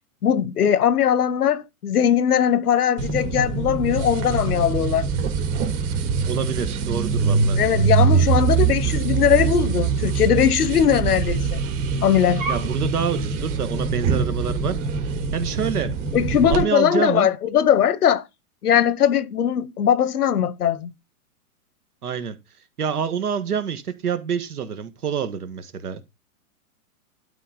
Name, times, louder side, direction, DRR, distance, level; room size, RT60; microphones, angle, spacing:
voice 1, 0.2-5.1 7.6-11.6 12.0-12.4 16.1-18.2 18.6-20.9, left 9 dB, 90° left, 1.1 m, -20 dB
sound 1, 3.0-16.6, right 5 dB, 55° right, 3.1 m, -23 dB
voice 2, 6.3-7.6 8.3-8.5 12.5-14.8 15.3-15.9 16.5-17.3 22.0-22.4 22.8-26.1, right 7 dB, 85° right, 1.6 m, -27 dB
12.0 x 4.0 x 5.0 m
hypercardioid pair, 130°, 44 cm